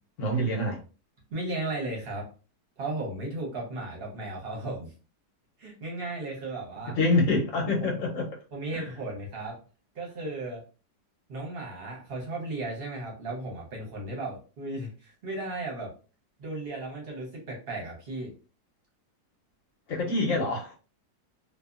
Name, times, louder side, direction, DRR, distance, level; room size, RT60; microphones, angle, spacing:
voice 1, 0.2-0.8 6.9-8.3 8.7-8.8 19.9-20.8, left 2 dB, 55° left, 1.1 m, -26 dB
voice 2, 1.3-2.3 2.8-4.9 5.6-7.0 7.8-7.9 8.5-9.6 9.9-10.6 11.3-15.9 16.4-18.3, right 2 dB, 45° right, 0.9 m, -35 dB
2.7 x 2.4 x 2.4 m
omnidirectional pair, 1.8 m